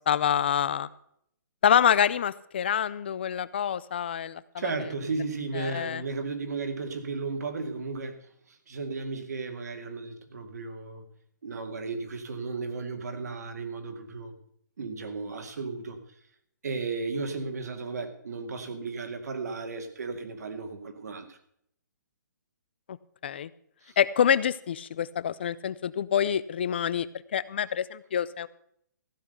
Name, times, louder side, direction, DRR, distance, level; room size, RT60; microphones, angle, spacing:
voice 1, 0.1-0.9 1.6-4.4 5.6-6.0 22.9-23.0 23.2-23.5 24.0-28.5, left 9 dB, 35° left, 0.5 m, -26 dB
voice 2, 4.6-11.0 11.4-14.3 14.8-16.0 16.6-21.4 23.8-24.0, right 4 dB, 60° right, 2.2 m, -35 dB
15.5 x 6.2 x 8.0 m
hypercardioid pair, 175°, 10 cm